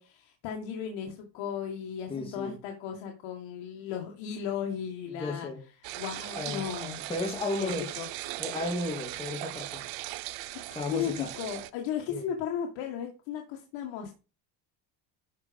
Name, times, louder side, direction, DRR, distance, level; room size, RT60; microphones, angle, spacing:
voice 1, 0.0-5.5 6.0-7.0 7.6-8.1 10.7-14.1, left 8 dB, 80° left, 1.9 m, -36 dB
voice 2, 2.1-2.6 5.1-5.6 6.4-7.9 8.4-9.8 10.8-11.3 12.1-12.3, left 2 dB, 10° left, 2.0 m, -34 dB
sound 1, 5.8-11.7, right 18 dB, 75° right, 0.8 m, -39 dB
12.0 x 5.0 x 5.1 m
cardioid pair, 140°, 44 cm